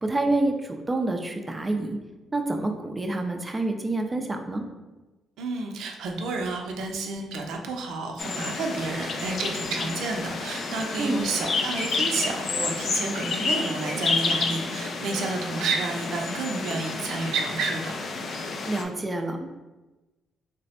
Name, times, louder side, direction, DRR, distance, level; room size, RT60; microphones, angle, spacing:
voice 1, 0.0-2.0 2.3-4.6 11.0-11.2 18.7-19.6, right 2 dB, 20° right, 5 dB, 0.4 m, -27 dB
voice 2, 5.4-18.0, right 3 dB, 80° right, 2 dB, 0.5 m, -30 dB
sound 1, 8.2-18.8, left 4 dB, 55° left, 0.4 m, -30 dB
3.3 x 2.1 x 4.1 m, 1.1 s
cardioid pair, 90°, 0 cm